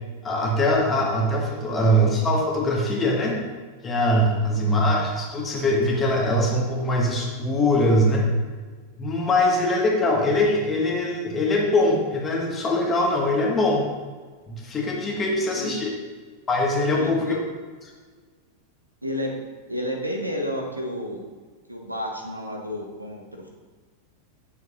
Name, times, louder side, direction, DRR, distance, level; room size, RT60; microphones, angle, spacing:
voice 1, 0.2-3.4 3.8-8.2 9.0-13.8 14.5-15.9 16.5-17.3, left 1 dB, 20° left, -1 dB, 1.6 m, -22 dB
voice 2, 15.5-16.1 16.9-17.4 19.0-19.4 19.7-21.3 21.7-23.5, equal, 85° right, 1 dB, 1.0 m, -31 dB
9.4 x 7.0 x 2.5 m, 1.5 s
figure-of-eight pair, 90°, 0 cm